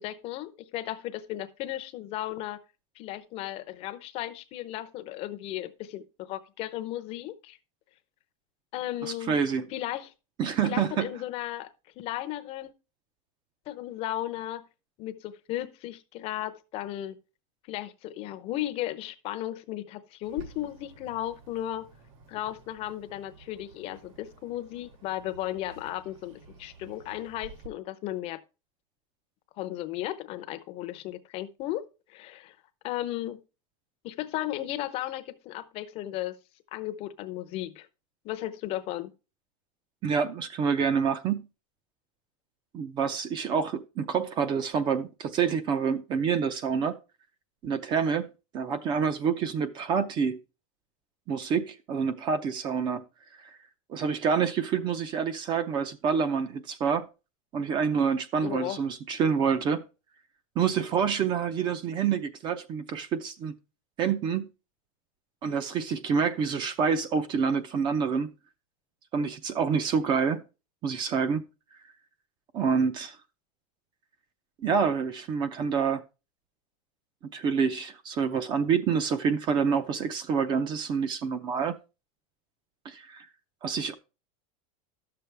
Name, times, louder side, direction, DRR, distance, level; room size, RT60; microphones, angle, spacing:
voice 1, 0.0-2.6 3.0-7.6 8.7-9.4 9.7-10.1 10.6-11.7 12.0-12.7 13.7-14.6 15.0-17.2 17.7-21.8 22.3-28.4 29.6-32.6 32.8-33.4 34.0-36.4 36.7-37.9 38.2-39.1 58.4-58.8, left 14 dB, 35° left, 0.7 m, -35 dB
voice 2, 9.0-9.7 10.4-11.1 40.0-41.4 42.7-47.0 47.6-50.4 51.3-53.0 53.9-57.1 57.5-59.9 60.6-63.5 64.0-64.5 65.4-68.3 69.1-70.4 70.8-71.4 72.5-73.2 74.6-76.0 77.2-81.7 82.8-83.3 83.6-83.9, right 6 dB, 25° right, 0.6 m, -27 dB
Bird, 20.2-27.7, right 4 dB, 65° right, 2.2 m, -51 dB
12.0 x 6.9 x 3.3 m
supercardioid pair, 170°, 18 cm